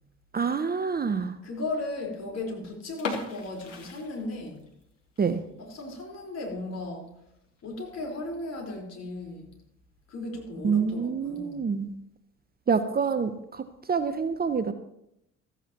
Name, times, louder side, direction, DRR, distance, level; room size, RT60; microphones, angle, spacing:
voice 1, 0.3-1.4 5.2-5.4 10.6-11.9 12.7-14.7, right 5 dB, 25° right, 11 dB, 0.8 m, -27 dB
voice 2, 1.4-4.6 5.6-7.1 7.6-9.5 10.1-11.6, left 2 dB, 45° left, 1 dB, 4.4 m, -36 dB
sound 1, 2.9-4.8 5.2-5.3 5.8-6.0 6.4-6.5 6.7-6.8 7.6-7.9, left 4 dB, 85° left, 1.5 m, -37 dB
16.0 x 14.0 x 3.0 m, 0.80 s
figure-of-eight pair, 50°, 36 cm